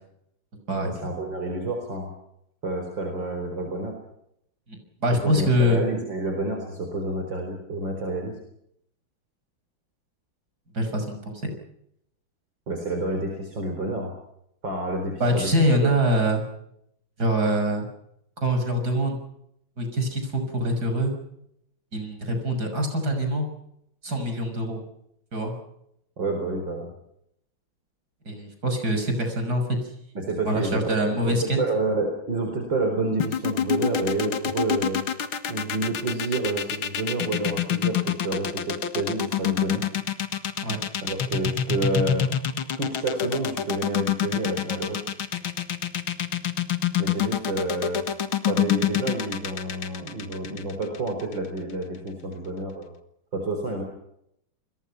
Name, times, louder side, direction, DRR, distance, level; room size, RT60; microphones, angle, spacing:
voice 1, 0.8-2.1 2.6-3.9 5.2-8.4 12.7-14.1 14.6-15.5 15.8-15.9 26.2-26.9 30.1-35.0 35.5-39.8 41.0-42.3 42.8-45.0 47.0-48.0 48.5-52.9 53.3-53.8, right 2 dB, 65° right, 3 dB, 4.9 m, -29 dB
voice 2, 4.7-5.8 10.7-11.5 15.2-16.4 17.2-17.8 18.4-19.2 19.8-21.1 21.9-23.5 24.0-24.8 25.3-25.5 28.2-29.6 30.4-31.6 40.6-40.8, equal, 50° right, 5 dB, 6.8 m, -24 dB
sound 1, 33.2-51.3, left 9 dB, 85° left, 2.5 m, -26 dB
29.0 x 22.0 x 5.8 m, 0.76 s
omnidirectional pair, 2.2 m